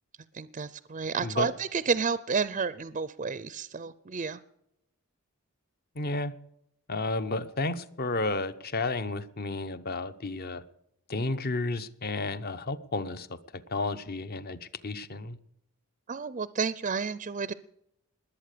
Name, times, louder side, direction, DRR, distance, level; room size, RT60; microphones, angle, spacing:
voice 1, 0.3-4.4 16.1-17.5, right 5 dB, 35° right, 16 dB, 0.5 m, -31 dB
voice 2, 5.9-6.3 6.9-10.6 11.1-15.4, left 2 dB, 45° left, 13 dB, 0.9 m, -32 dB
20.5 x 8.3 x 6.7 m, 0.77 s
head